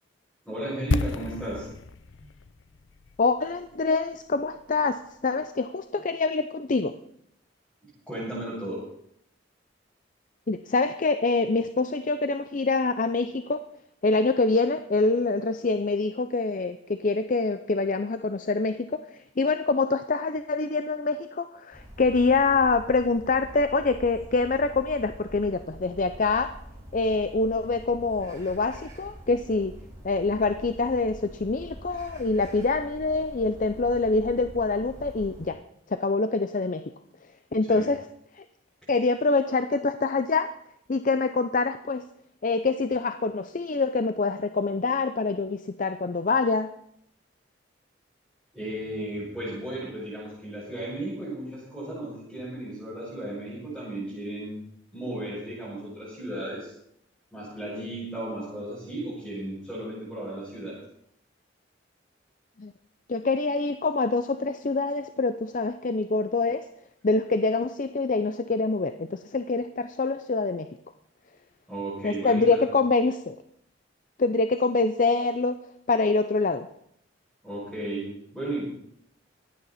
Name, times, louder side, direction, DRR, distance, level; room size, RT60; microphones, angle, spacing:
voice 1, 0.4-1.7 2.2-2.3 8.1-8.9 37.7-37.9 48.5-54.5 54.9-56.7 57.3-60.8 71.7-72.6 77.4-78.6, right 1 dB, ahead, -10 dB, 6.8 m, -34 dB
sound 1, 0.9-4.8 5.1-5.2, left 4 dB, 90° left, 0.6 m, -32 dB
voice 2, 3.2-6.9 10.5-13.6 14.0-26.5 26.9-29.7 30.0-35.6 35.9-36.9 37.5-38.0 38.4-38.5 38.9-40.5 40.9-42.0 42.4-46.7 62.6-62.7 63.1-66.6 67.0-70.7 72.0-73.4 74.2-75.6 75.9-76.7, left 3 dB, 45° left, 9 dB, 0.6 m, -25 dB
sound 2, 21.7-35.5, equal, 20° right, 6.0 m, -45 dB
24.5 x 9.4 x 4.2 m, 0.72 s
head